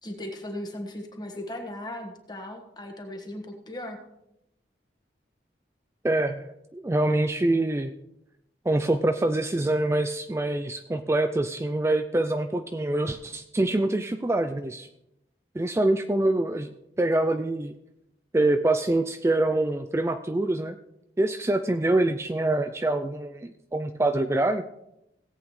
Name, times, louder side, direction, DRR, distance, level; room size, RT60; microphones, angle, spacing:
voice 1, 0.0-4.0, left 1 dB, 25° left, 3 dB, 1.4 m, -37 dB
voice 2, 6.0-7.9 8.7-14.9 15.6-16.7 17.0-17.7 18.3-20.7 21.2-24.7, right 2 dB, 15° right, 8 dB, 0.3 m, -25 dB
17.0 x 8.3 x 3.2 m, 0.85 s
head